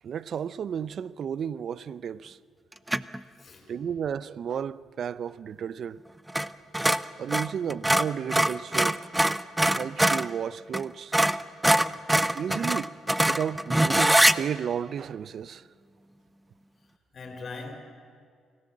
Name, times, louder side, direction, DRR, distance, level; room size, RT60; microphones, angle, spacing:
voice 1, 0.0-2.4 3.7-6.0 7.2-9.0 9.6-11.1 12.3-12.9 13.2-15.7, right 8 dB, 60° right, 0.5 m, -33 dB
sound 1, 2.9-3.2 6.3-6.5 6.7-10.3 10.7-10.8 11.1-14.4, right 1 dB, 10° right, 0.6 m, -23 dB
voice 2, 3.4-3.7 17.1-17.8, left 3 dB, 45° left, 4.2 m, -40 dB
25.0 x 17.0 x 7.3 m
cardioid pair, 90°, 0 cm